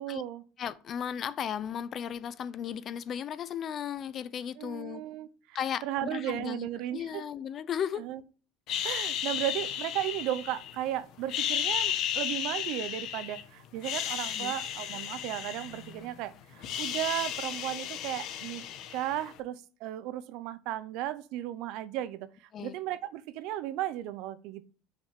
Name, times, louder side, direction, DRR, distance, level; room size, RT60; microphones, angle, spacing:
voice 1, 0.0-0.4 4.6-7.2 8.0-8.2 8.8-18.6 18.9-22.3 22.6-24.6, right 13 dB, 65° right, 0.7 m, -35 dB
voice 2, 0.6-5.0 5.5-8.1 8.9-9.0 14.4-14.5 22.5-22.8, left 9 dB, 35° left, 0.5 m, -35 dB
sound 1, 8.7-10.8 11.2-13.4 13.8-16.2 16.4-19.3, left 10 dB, 50° left, 1.1 m, -34 dB
6.5 x 5.8 x 5.7 m
cardioid pair, 150°, 0 cm